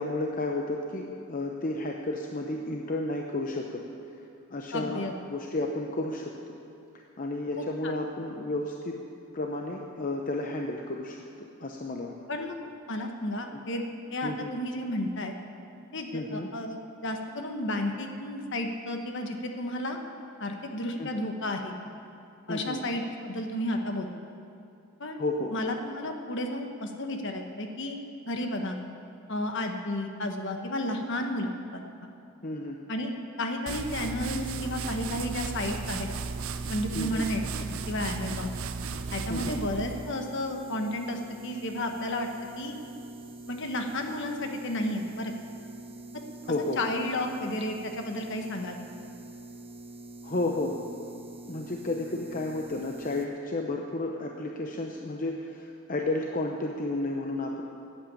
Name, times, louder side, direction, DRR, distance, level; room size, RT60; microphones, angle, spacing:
voice 1, 0.0-3.8 4.5-5.0 5.3-6.5 6.9-9.0 9.3-12.1 13.5-13.6 14.2-14.5 16.1-16.5 21.0-21.1 22.5-22.8 25.2-25.5 32.4-32.8 36.9-37.3 39.3-39.6 46.5-46.8 50.2-50.8 51.5-57.6, left 2 dB, 40° left, 1 dB, 0.8 m, -32 dB
voice 2, 4.7-5.1 7.6-7.9 12.3-12.5 12.9-13.8 14.1-15.3 15.9-20.0 20.4-21.7 22.5-24.1 25.0-25.2 25.5-28.0 28.3-28.8 29.3-31.8 32.9-33.1 33.4-36.1 36.7-38.5 39.1-42.3 42.6-42.8 43.5-45.3 46.7-48.8, left 1 dB, 55° left, 4 dB, 1.3 m, -32 dB
sound 1, 33.7-40.2, right 5 dB, 70° right, 0.6 m, -35 dB
sound 2, 34.4-53.3, right 2 dB, 25° right, 1.0 m, -45 dB
13.0 x 8.8 x 8.4 m, 2.8 s
head